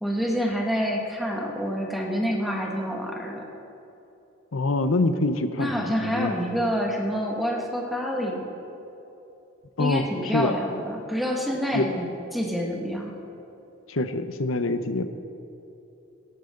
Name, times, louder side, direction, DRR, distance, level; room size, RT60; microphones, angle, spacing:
voice 1, 0.0-3.5 5.6-8.5 9.8-13.2, equal, ahead, -2 dB, 2.0 m, -27 dB
voice 2, 4.5-6.3 9.8-10.0 10.3-10.5 11.7-11.9 13.9-15.1, left 2 dB, 80° left, 10 dB, 0.9 m, -25 dB
17.5 x 15.0 x 3.9 m, 2.9 s
head